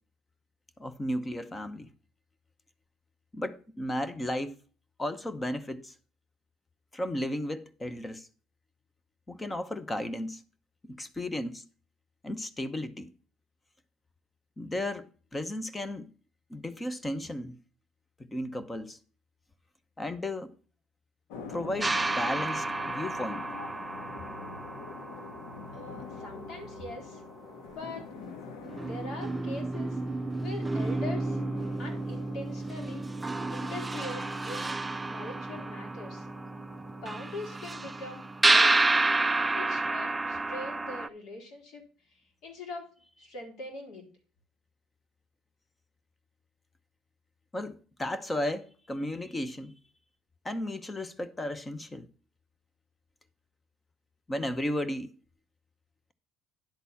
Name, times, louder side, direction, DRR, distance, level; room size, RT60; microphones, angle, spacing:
voice 1, 0.8-1.9 3.3-4.5 5.0-5.9 6.9-8.3 9.3-10.4 10.8-11.6 12.2-13.1 14.6-16.1 16.5-17.6 18.2-19.0 20.0-20.5 21.5-23.4 47.5-49.7 50.4-52.1 54.3-55.1, left 1 dB, 15° left, 0.8 m, -34 dB
sound 1, 21.3-38.1, left 5 dB, 85° left, 1.3 m, -46 dB
sound 2, 21.8-26.7 28.2-28.3 28.6-41.1, right 2 dB, 15° right, 0.3 m, -30 dB
voice 2, 25.7-27.2 27.7-28.0 28.8-30.0 30.4-31.4 31.8-33.1 33.5-34.8 35.1-36.3 37.0-38.9 39.5-42.9 43.2-44.1, left 2 dB, 60° left, 3.7 m, -42 dB
10.5 x 4.0 x 7.0 m
cardioid pair, 120°, 0 cm